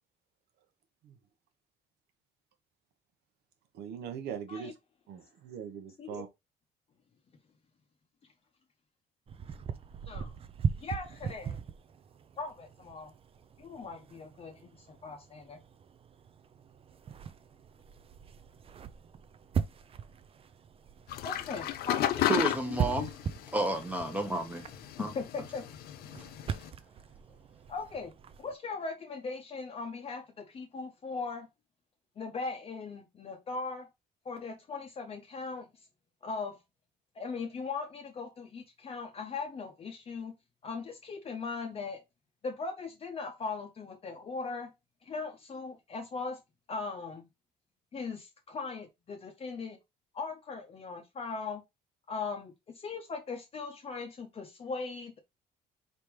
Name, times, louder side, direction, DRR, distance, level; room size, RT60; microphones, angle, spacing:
voice 1, 3.7-4.7 5.1-6.3, right 8 dB, 75° right, 1.1 m, -41 dB
sound 1, 9.3-28.5, right 7 dB, 35° right, 0.5 m, -40 dB
voice 2, 10.8-11.6 12.4-13.1 13.6-15.6 21.2-22.4 25.0-25.7 27.7-28.1 28.4-31.5 32.2-33.9 34.2-35.7 36.2-36.6 37.1-40.3 40.6-42.0 42.4-44.7 45.0-46.4 46.7-47.3 47.9-49.8 50.1-51.6 52.1-55.2, left 4 dB, 35° left, 0.7 m, -39 dB
sound 2, 21.1-26.7, left 12 dB, 65° left, 0.5 m, -34 dB
voice 3, 22.3-23.1 23.5-24.6 25.0-25.1, right 2 dB, 10° right, 0.9 m, -31 dB
4.4 x 3.4 x 3.1 m
cardioid pair, 110°, 17 cm